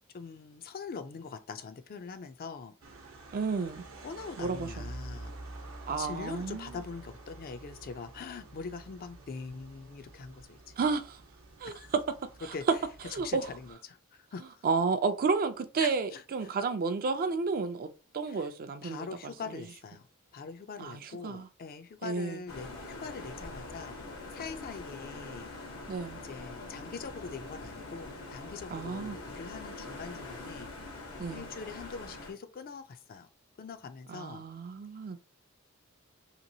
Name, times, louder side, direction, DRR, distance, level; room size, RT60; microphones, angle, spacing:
voice 1, 0.1-2.7 4.0-5.4 6.0-10.7 11.6-11.9 12.5-12.6 13.1-14.7 15.8-16.2 18.3-18.5 18.8-20.1 20.3-24.0 24.3-25.5 26.2-30.7 31.3-33.3 33.6-34.4, left 5 dB, 45° left, 0.4 m, -43 dB
sound 1, 2.8-13.7, right 2 dB, 70° right, 0.8 m, -48 dB
voice 2, 3.3-3.8 4.4-4.9 5.9-6.7 10.8-11.2 11.6-12.0 12.5-12.6 13.1-13.5 14.6-17.9 18.1-19.6 20.8-21.5 22.0-22.4 25.9-26.2 28.7-29.2 31.2-31.5 34.1-35.2, right 4 dB, 45° right, 0.4 m, -32 dB
sound 2, 22.5-32.3, left 2 dB, 85° left, 1.1 m, -44 dB
2.9 x 2.9 x 2.7 m
head